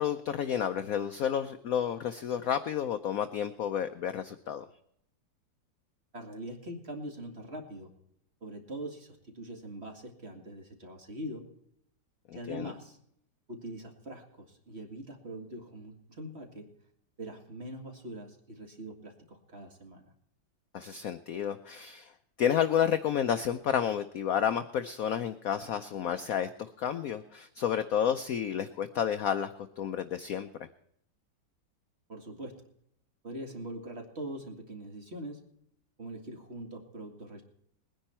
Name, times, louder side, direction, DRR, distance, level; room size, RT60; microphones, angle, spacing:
voice 1, 0.0-4.6 12.3-12.7 20.7-22.1 22.4-30.5, left 9 dB, 65° left, 9 dB, 0.8 m, -31 dB
voice 2, 6.1-7.9 8.4-11.4 12.3-13.0 13.5-16.7 17.2-20.1 32.1-32.6 33.2-35.4 36.0-37.4, right 1 dB, 35° right, 3 dB, 2.2 m, -42 dB
20.5 x 10.0 x 4.4 m, 0.71 s
omnidirectional pair, 2.1 m